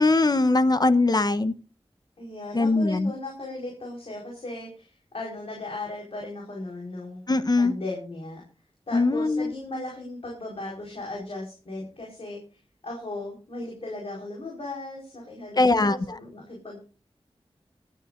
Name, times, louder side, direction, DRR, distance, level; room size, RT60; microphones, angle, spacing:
voice 1, 0.0-1.5 2.5-3.1 7.3-7.7 8.9-9.5 15.6-16.0, left 2 dB, 40° left, 11 dB, 0.9 m, -21 dB
voice 2, 2.2-8.4 8.9-12.4 12.8-16.8, left 2 dB, 70° left, -1 dB, 4.6 m, -37 dB
24.0 x 10.0 x 2.6 m, 0.37 s
wide cardioid pair, 80°, 10 cm